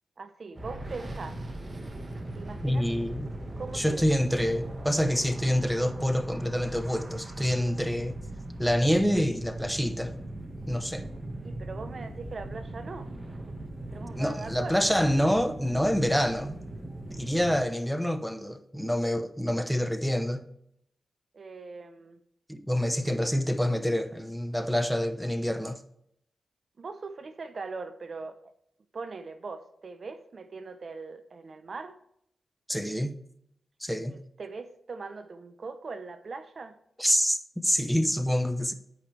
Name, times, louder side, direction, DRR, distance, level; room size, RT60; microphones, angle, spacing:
voice 1, 0.2-1.4 2.3-2.9 3.6-4.0 11.4-13.1 13.9-14.9 21.3-22.2 26.8-28.4 28.9-32.0 34.1-36.8, right 4 dB, 60° right, 0.7 m, -40 dB
sound 1, 0.6-17.6, right 1 dB, 35° right, 1.5 m, -39 dB
voice 2, 2.6-3.3 3.7-8.2 8.6-10.1 10.7-11.1 14.1-16.6 17.1-20.5 22.5-25.8 32.7-33.2 33.8-34.2 37.0-38.7, equal, ahead, 0.7 m, -27 dB
11.5 x 5.3 x 3.3 m
cardioid pair, 55°, 0 cm